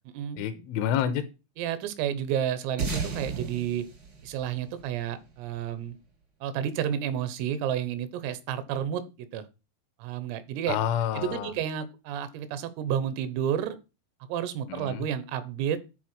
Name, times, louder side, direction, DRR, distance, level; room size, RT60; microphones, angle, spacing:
voice 1, 0.4-1.3 10.7-11.5 14.7-15.0, left 9 dB, 80° left, 12 dB, 3.1 m, -28 dB
voice 2, 1.6-3.9 4.2-6.0 6.4-9.5 10.0-10.8 11.2-13.8 14.3-15.8, right 9 dB, 85° right, 13 dB, 3.7 m, -31 dB
sound 1, 2.8-5.6, right 4 dB, 65° right, 1.1 m, -34 dB
10.5 x 4.4 x 6.1 m, 0.29 s
omnidirectional pair, 5.8 m